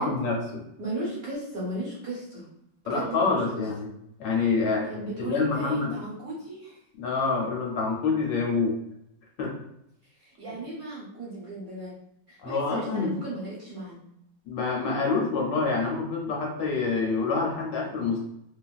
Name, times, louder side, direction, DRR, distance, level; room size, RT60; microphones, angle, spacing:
voice 1, 0.0-0.6 2.9-3.9 4.2-6.0 7.0-8.8 9.4-9.5 12.4-13.1 14.5-18.2, left 4 dB, 75° left, -1 dB, 1.3 m, -27 dB
voice 2, 0.8-2.5 2.9-3.6 4.8-6.8 10.2-11.9 12.3-14.0, right 2 dB, 60° right, -6 dB, 1.0 m, -36 dB
2.9 x 2.4 x 2.3 m, 0.78 s
omnidirectional pair, 2.1 m